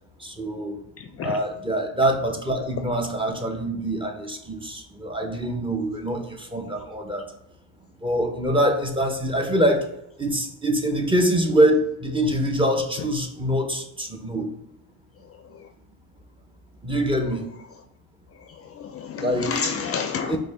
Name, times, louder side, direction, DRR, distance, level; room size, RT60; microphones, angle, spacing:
voice 1, 0.2-0.8 1.2-7.3 8.0-9.9 10.2-14.5 16.8-17.5 19.2-19.6 20.3-20.4, right 1 dB, 15° right, 4 dB, 0.6 m, -24 dB
voice 2, 1.0-1.4 18.8-20.4, left 6 dB, 40° left, 6 dB, 0.4 m, -29 dB
5.0 x 2.2 x 3.3 m, 0.84 s
supercardioid pair, 90°, 39 cm